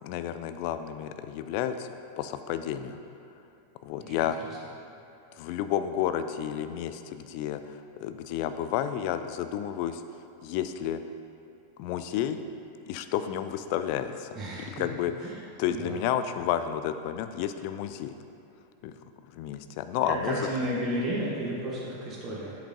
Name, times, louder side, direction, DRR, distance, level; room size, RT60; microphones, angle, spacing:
voice 1, 0.0-1.9 2.2-3.0 3.8-4.4 5.4-10.0 10.4-11.0 11.8-12.4 12.9-14.3 14.7-15.1 15.6-18.1 18.8-18.9 19.3-20.4, left 10 dB, 45° left, 10 dB, 0.3 m, -31 dB
voice 2, 14.3-14.8 15.2-15.4 15.7-16.0 20.2-22.6, right 1 dB, 30° right, -5 dB, 0.9 m, -32 dB
8.1 x 6.0 x 2.6 m, 2.9 s
figure-of-eight pair, 90°, 0 cm